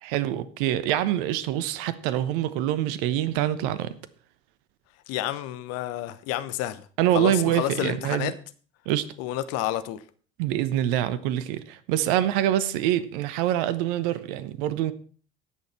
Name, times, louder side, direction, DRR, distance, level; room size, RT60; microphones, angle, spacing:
voice 1, 0.0-3.9 7.0-8.3 8.9-9.0 10.4-14.9, right 12 dB, 65° right, 1.0 m, -25 dB
voice 2, 5.1-6.8 7.1-8.3 9.2-10.0, left 13 dB, 55° left, 1.0 m, -30 dB
17.5 x 6.6 x 4.3 m
figure-of-eight pair, 60°, 29 cm